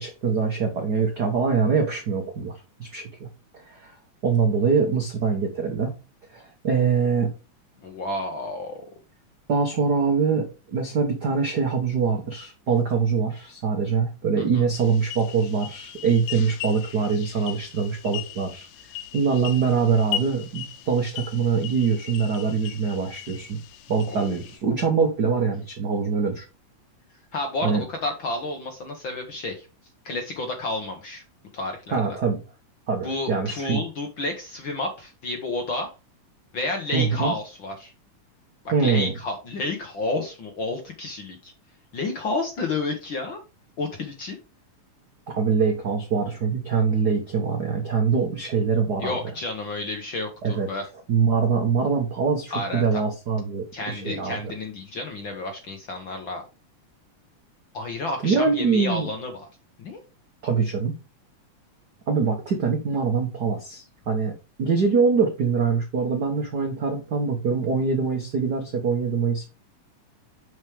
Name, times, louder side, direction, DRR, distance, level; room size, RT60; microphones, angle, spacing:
voice 1, 0.0-3.3 3.5-3.9 4.2-5.9 6.3-7.3 9.5-18.7 19.1-23.6 23.9-26.4 27.6-27.8 31.9-32.4 32.9-33.8 36.9-37.3 38.7-39.1 45.3-49.2 50.4-50.7 51.1-54.4 58.2-59.1 60.4-60.9 62.1-64.3 64.6-69.4, right 5 dB, 80° right, 3 dB, 0.9 m, -24 dB
voice 2, 7.8-8.8 14.4-14.6 24.0-24.4 27.3-29.7 30.0-31.2 31.5-32.0 33.0-35.9 36.5-37.9 38.8-41.5 41.9-43.4 43.8-44.4 49.0-50.9 52.5-53.0 53.7-56.4 57.7-59.5 59.8-60.0, left 2 dB, 60° left, 4 dB, 1.3 m, -30 dB
sound 1, 14.7-24.6, left 11 dB, 85° left, 2.4 m, -38 dB
6.7 x 6.2 x 3.5 m, 0.29 s
omnidirectional pair, 3.7 m